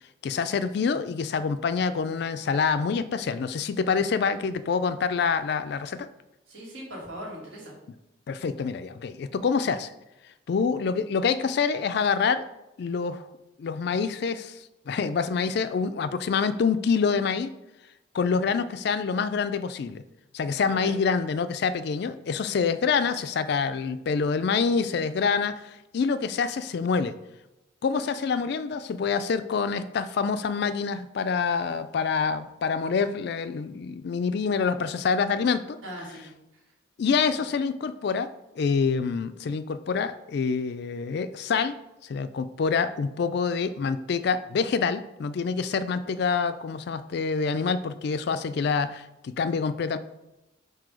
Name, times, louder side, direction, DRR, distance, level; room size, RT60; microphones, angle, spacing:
voice 1, 0.2-6.1 8.3-9.9 10.5-12.4 12.8-13.3 13.6-17.5 18.1-20.0 20.3-27.1 27.8-35.8 37.0-38.3 38.6-41.8 42.0-50.0, left 5 dB, 55° left, 12 dB, 0.3 m, -26 dB
voice 2, 6.5-7.7 20.7-21.0 35.8-36.6, equal, 75° right, -3 dB, 2.1 m, -40 dB
7.5 x 2.8 x 4.8 m, 0.96 s
head